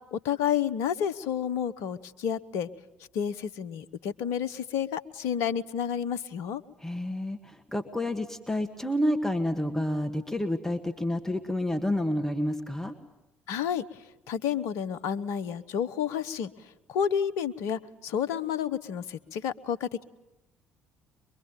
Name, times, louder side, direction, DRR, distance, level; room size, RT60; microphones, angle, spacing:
voice 1, 0.1-2.7 3.1-6.6 13.5-13.8 14.3-16.5 16.9-20.0, left 8 dB, 65° left, 14 dB, 0.9 m, -30 dB
voice 2, 6.8-13.0, left 1 dB, 5° left, 5 dB, 1.8 m, -29 dB
23.5 x 23.0 x 9.1 m, 0.96 s
figure-of-eight pair, 50°, 6 cm